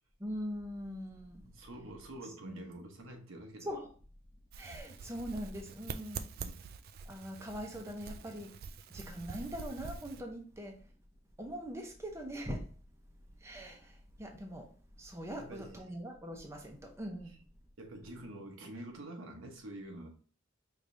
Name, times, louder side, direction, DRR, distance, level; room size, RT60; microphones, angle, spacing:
voice 1, 0.2-1.4 2.4-2.7 3.6-3.9 4.6-6.3 7.1-8.5 8.9-10.8 11.4-12.6 13.4-14.7 15.0-17.4, equal, 15° right, 0.7 m, -42 dB
voice 2, 1.4-3.7 6.4-6.6 15.4-15.8 17.8-20.1, right 1 dB, 80° right, 1.0 m, -47 dB
sound 1, 4.5-10.2, right 5 dB, 50° right, 0.3 m, -45 dB
4.9 x 3.2 x 2.6 m
head